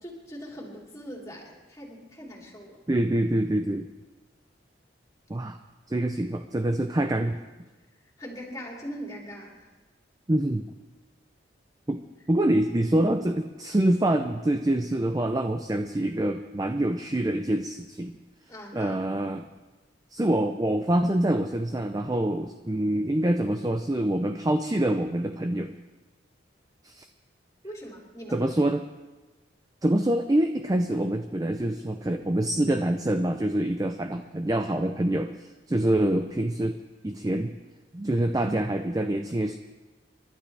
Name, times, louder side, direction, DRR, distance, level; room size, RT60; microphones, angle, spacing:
voice 1, 0.0-2.8 8.2-9.6 18.5-19.0 27.6-28.4, equal, 15° left, -2 dB, 3.1 m, -41 dB
voice 2, 2.9-3.9 5.3-5.6 5.9-7.4 10.3-10.7 11.9-12.0 12.3-18.2 18.7-19.5 20.1-25.7 26.8-27.1 28.3-28.9 29.8-35.4 35.7-36.8 37.0-37.5 37.9-39.6, right 1 dB, 20° right, 7 dB, 0.5 m, -25 dB
29.5 x 12.0 x 3.4 m, 1.2 s
head